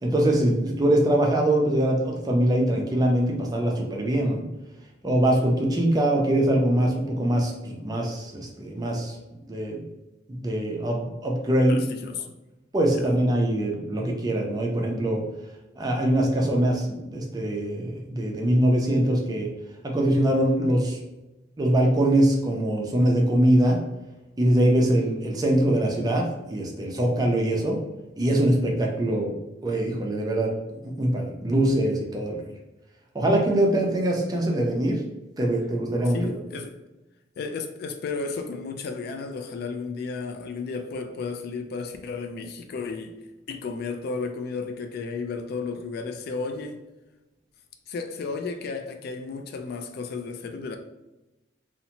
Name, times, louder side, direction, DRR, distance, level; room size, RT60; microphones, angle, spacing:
voice 1, 0.0-4.4 5.0-9.1 9.5-9.8 10.3-11.8 12.7-15.2 15.8-19.5 19.8-21.0 21.6-23.8 24.4-27.8 28.2-29.3 29.6-30.5 30.8-32.4 33.1-35.0 35.4-36.3, right 1 dB, 20° right, 0.4 m, -23 dB
voice 2, 11.7-12.3 12.9-13.2 36.1-36.7 37.4-43.1 43.5-46.8 47.9-50.8, left 4 dB, 55° left, 0.3 m, -33 dB
2.6 x 2.1 x 2.8 m
head